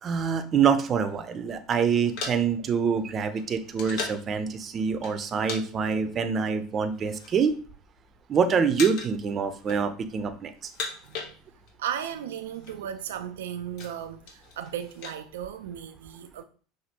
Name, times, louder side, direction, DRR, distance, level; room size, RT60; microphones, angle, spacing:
voice 1, 0.0-7.5 8.3-10.5, right 6 dB, 35° right, 0.6 m, -25 dB
sound 1, 1.8-4.3 5.0-5.6 5.9-6.1 6.8-7.5 7.9-8.3 8.7-9.2 9.5-10.2 10.5-11.8 12.1-12.2 12.4-12.7 13.2-15.2, left 4 dB, 65° left, 1.3 m, -38 dB
voice 2, 11.0-11.3 11.8-16.4, right 9 dB, 90° right, 0.3 m, -35 dB
5.8 x 2.6 x 2.9 m
supercardioid pair, 95°, 0 cm